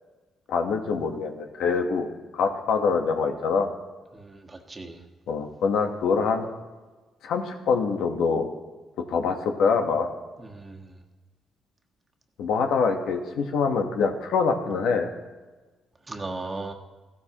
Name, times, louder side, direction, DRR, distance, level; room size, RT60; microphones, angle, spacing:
voice 1, 0.5-3.7 5.3-6.5 7.2-8.5 9.1-10.1 12.4-15.1, left 5 dB, 80° left, 4 dB, 1.2 m, -25 dB
voice 2, 4.1-5.0 10.4-11.0 16.1-16.7, right 3 dB, 25° right, 2 dB, 1.4 m, -37 dB
14.5 x 13.0 x 3.0 m, 1.3 s
cardioid pair, 90°, 0 cm